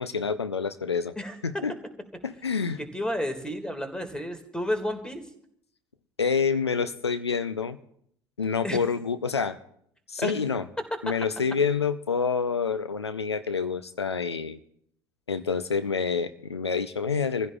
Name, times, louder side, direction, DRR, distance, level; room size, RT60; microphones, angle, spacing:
voice 1, 0.0-1.1 1.4-1.7 2.2-2.8 6.2-7.8 8.4-9.6 10.1-10.6 11.0-14.6 15.3-17.5, left 5 dB, 90° left, 12 dB, 0.6 m, -27 dB
voice 2, 1.2-1.6 2.9-5.2 8.6-8.8 10.2-10.3, left 1 dB, 5° left, 8 dB, 2.1 m, -31 dB
27.0 x 15.0 x 2.4 m, 0.70 s
figure-of-eight pair, 65°, 13 cm